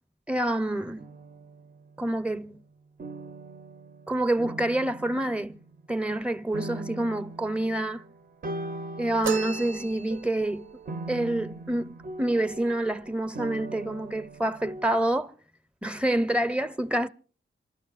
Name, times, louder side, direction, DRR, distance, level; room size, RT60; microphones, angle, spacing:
voice 1, 0.3-1.1 2.0-2.6 4.1-5.6 5.9-8.0 9.0-10.8 11.1-15.3 15.8-17.1, right 1 dB, 5° right, 0.6 m, -27 dB
sound 1, 1.0-2.2 3.0-6.2 6.5-14.9, right 2 dB, 45° right, 0.6 m, -41 dB
sound 2, 9.2-10.5, right 6 dB, 80° right, 0.7 m, -33 dB
27.0 x 12.5 x 2.4 m
cardioid pair, 70°, 21 cm